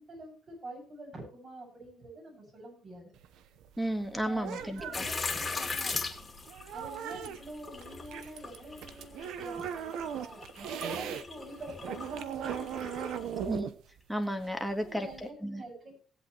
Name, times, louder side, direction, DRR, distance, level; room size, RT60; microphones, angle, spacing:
voice 1, 0.0-3.1 4.2-6.2 6.7-13.4 14.8-15.9, right 1 dB, 50° right, 0 dB, 7.8 m, -46 dB
sound 1, 3.1-11.2 11.6-15.3, right 9 dB, 85° right, 1.0 m, -39 dB
voice 2, 3.8-5.0 13.5-13.7 14.1-15.1 15.4-15.6, equal, ahead, 7 dB, 1.9 m, -33 dB
sound 2, 4.9-13.6, left 4 dB, 25° left, 2.4 m, -39 dB
18.0 x 8.2 x 3.3 m, 0.40 s
cardioid pair, 90°, 0 cm